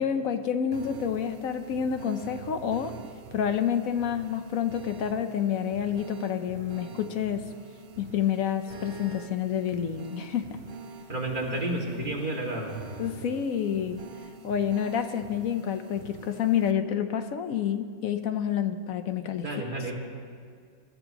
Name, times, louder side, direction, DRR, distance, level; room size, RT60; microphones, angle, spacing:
voice 1, 0.0-2.9 3.3-7.5 8.0-10.6 13.0-14.0 14.4-19.5, left 8 dB, 70° left, 8 dB, 1.1 m, -28 dB
sound 1, 0.7-16.7, right 6 dB, 55° right, 0.7 m, -45 dB
voice 2, 11.1-12.8 19.4-19.9, right 1 dB, 35° right, -3 dB, 2.2 m, -31 dB
23.0 x 12.5 x 3.0 m, 2.2 s
omnidirectional pair, 1.5 m